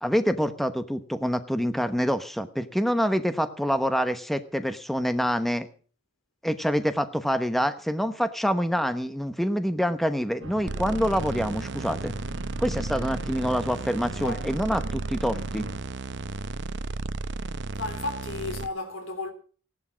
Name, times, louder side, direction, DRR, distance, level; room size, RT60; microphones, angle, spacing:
voice 1, 0.0-5.7 6.4-12.1 12.6-15.7, equal, ahead, 1.0 m, -26 dB
Organ, 10.4-15.8, right 2 dB, 70° right, 1.3 m, -41 dB
sound 1, 10.7-18.7, right 2 dB, 55° right, 0.7 m, -34 dB
voice 2, 17.8-19.3, left 2 dB, 75° left, 3.5 m, -33 dB
16.5 x 11.5 x 6.1 m
head